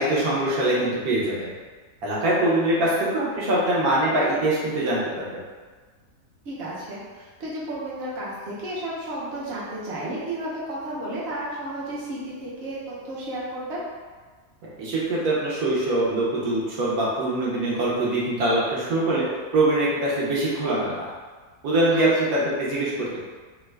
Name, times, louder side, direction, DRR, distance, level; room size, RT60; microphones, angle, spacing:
voice 1, 0.0-1.5 2.0-5.4 14.8-19.3 19.5-21.1 21.6-23.2, right 1 dB, 75° right, -6 dB, 1.1 m, -23 dB
voice 2, 6.4-13.8 21.9-22.0, right 1 dB, 50° right, -7 dB, 0.9 m, -33 dB
2.9 x 2.3 x 3.2 m, 1.4 s
omnidirectional pair, 1.6 m